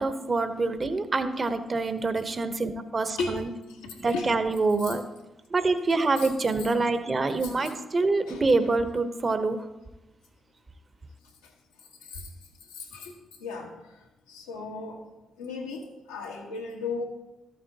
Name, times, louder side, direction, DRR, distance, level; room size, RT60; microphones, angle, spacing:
voice 1, 0.0-3.5 4.0-5.0 5.5-9.6, right 3 dB, 40° right, 10 dB, 0.9 m, -26 dB
voice 2, 3.8-4.3 4.8-4.9 6.2-6.3 7.4-7.7 8.3-8.7 12.1-12.3 12.8-13.1 13.4-13.7 14.3-15.0 15.4-17.0, left 4 dB, 90° left, 0 dB, 1.3 m, -35 dB
13.5 x 7.6 x 2.8 m, 1.0 s
hypercardioid pair, 45°, 0 cm